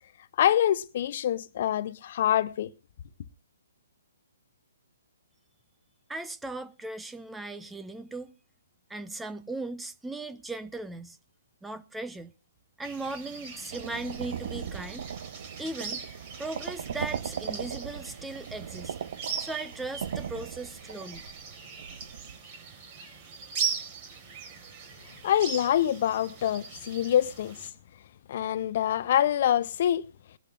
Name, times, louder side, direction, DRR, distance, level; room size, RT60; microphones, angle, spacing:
voice 1, 0.4-2.7 25.2-27.7 28.3-30.0, left 11 dB, 50° left, 0.6 m, -25 dB
voice 2, 6.1-8.3 8.9-11.2 11.6-12.3 12.8-15.1 15.6-16.0 16.4-19.0 19.4-21.3, right 2 dB, 5° right, 0.7 m, -38 dB
sound 1, 12.8-27.7, right 6 dB, 40° right, 3.8 m, -40 dB
sound 2, 13.7-22.4, right 8 dB, 55° right, 0.8 m, -38 dB
22.0 x 11.5 x 2.4 m
figure-of-eight pair, 130°, 0 cm